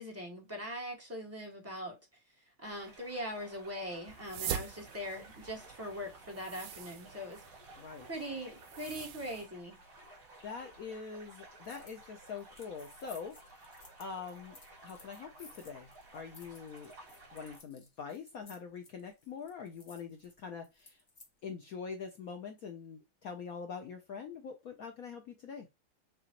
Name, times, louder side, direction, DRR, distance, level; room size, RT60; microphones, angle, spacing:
voice 1, 0.0-2.0 2.6-7.4 8.0-9.8, equal, 10° right, 0.8 m, -41 dB
sound 1, 2.6-17.6, right 2 dB, 50° right, 3.3 m, -55 dB
sound 2, 4.1-9.5, right 10 dB, 80° right, 1.4 m, -44 dB
voice 2, 7.8-8.1 10.4-13.6 14.0-14.6 14.8-16.9 17.3-21.0 21.4-25.7, left 6 dB, 70° left, 0.8 m, -44 dB
sound 3, 11.6-12.0 12.3-21.3, left 3 dB, 45° left, 0.5 m, -58 dB
6.6 x 2.3 x 2.9 m
omnidirectional pair, 2.3 m